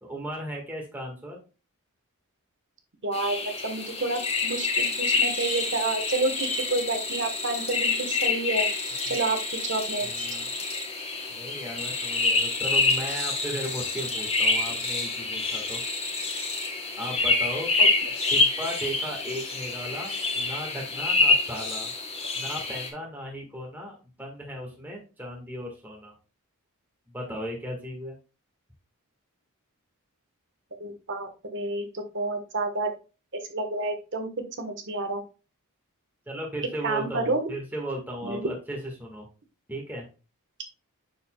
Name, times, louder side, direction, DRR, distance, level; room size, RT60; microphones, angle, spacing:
voice 1, 0.0-1.4 10.3-10.5 11.3-15.8 17.0-17.7 18.3-21.9 22.4-26.1 27.1-28.2 36.3-39.3 39.7-40.1, equal, 10° right, -2 dB, 1.5 m, -36 dB
voice 2, 3.0-8.7 9.1-10.3 17.8-17.9 18.2-18.3 30.8-32.9 33.3-34.3 34.6-35.2 36.8-37.5 38.2-38.5, right 2 dB, 55° right, 6 dB, 1.3 m, -29 dB
sound 1, 3.1-22.9, left 3 dB, 25° left, 1.6 m, -27 dB
6.7 x 6.7 x 2.3 m, 0.32 s
head